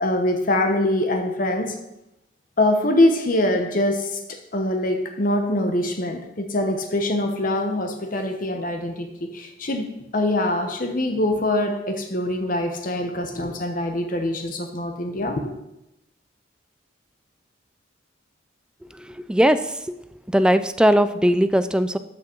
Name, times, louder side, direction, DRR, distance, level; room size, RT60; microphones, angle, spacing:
voice 1, 0.0-1.7 2.6-9.1 9.3-9.9 10.1-15.4, left 1 dB, 45° left, 5 dB, 1.0 m, -23 dB
voice 2, 19.0-19.6 20.3-22.0, equal, 5° right, 11 dB, 0.3 m, -19 dB
13.0 x 6.1 x 4.5 m, 0.89 s
head